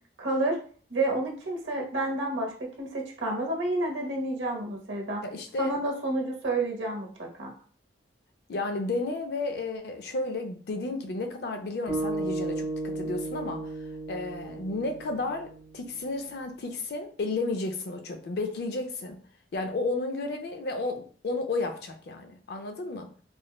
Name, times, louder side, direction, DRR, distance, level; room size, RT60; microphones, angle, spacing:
voice 1, 0.2-0.6 0.9-5.2 5.6-7.5, right 2 dB, 80° right, 0 dB, 0.8 m, -30 dB
voice 2, 5.2-5.7 8.5-13.7 14.1-19.2 19.5-23.1, left 2 dB, 55° left, 5 dB, 0.4 m, -32 dB
sound 1, 11.9-16.2, right 2 dB, 15° right, 0.7 m, -34 dB
3.0 x 2.0 x 2.2 m, 0.44 s
head